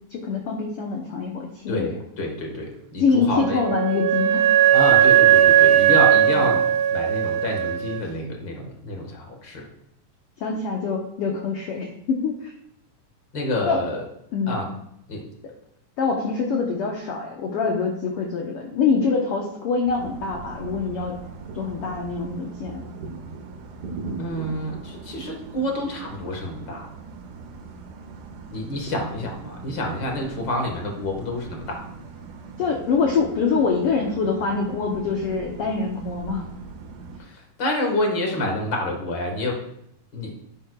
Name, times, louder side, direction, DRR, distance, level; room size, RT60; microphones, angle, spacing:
voice 1, 0.1-1.9 3.0-4.4 6.3-6.6 10.4-12.5 13.7-13.8 14.3-14.6 16.0-21.2 21.5-22.8 32.6-36.4, left 5 dB, 75° left, 1 dB, 1.4 m, -25 dB
voice 2, 1.7-3.6 4.7-9.7 13.3-14.0 14.5-14.7 15.1-15.3 24.2-26.9 28.5-31.9 37.2-39.6 40.1-40.3, left 1 dB, 45° left, 2 dB, 1.6 m, -28 dB
Wind instrument woodwind instrument, 3.4-8.0, right 10 dB, 90° right, 2.5 m, -17 dB
sound 1, 19.8-37.2, right 4 dB, 75° right, 2.3 m, -39 dB
10.0 x 9.7 x 2.3 m, 0.75 s
omnidirectional pair, 3.9 m